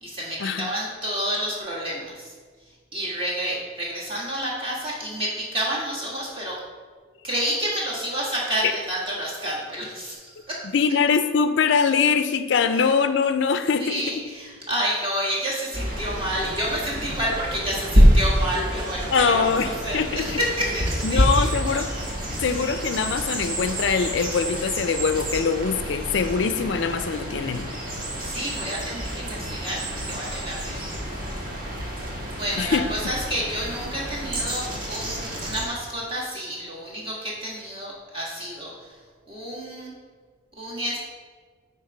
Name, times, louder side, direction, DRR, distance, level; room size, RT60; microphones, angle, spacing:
voice 1, 0.0-2.3 2.9-6.6 7.2-10.7 12.7-12.8 13.8-21.8 22.3-22.6 28.1-31.2 31.9-39.0 39.3-39.9 40.6-41.0, equal, 30° right, -5 dB, 1.9 m, -30 dB
voice 2, 10.7-14.2 19.1-20.4 21.0-21.9 22.4-27.7 32.6-32.9, left 5 dB, 65° left, 9 dB, 0.4 m, -23 dB
sound 1, 15.7-35.7, equal, 45° right, 1.3 m, -26 dB
8.8 x 3.3 x 5.0 m, 1.5 s
head